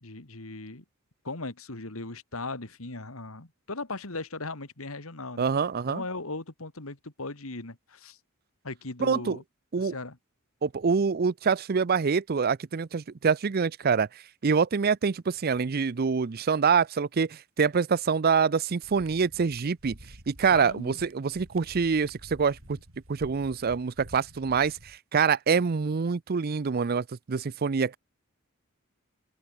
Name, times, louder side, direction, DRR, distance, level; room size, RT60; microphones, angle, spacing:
voice 1, 0.0-0.8 1.2-5.5 5.9-8.2 8.6-9.4 9.8-10.2 20.5-21.0, left 3 dB, 80° left, 2.6 m, -38 dB
voice 2, 5.4-6.0 9.0-9.4 9.7-9.9 10.6-14.1 14.4-20.0 20.3-22.8 23.1-28.0, right 5 dB, 45° right, 0.5 m, -25 dB
sound 1, 18.8-25.0, right 1 dB, 75° right, 6.5 m, -50 dB
open air
head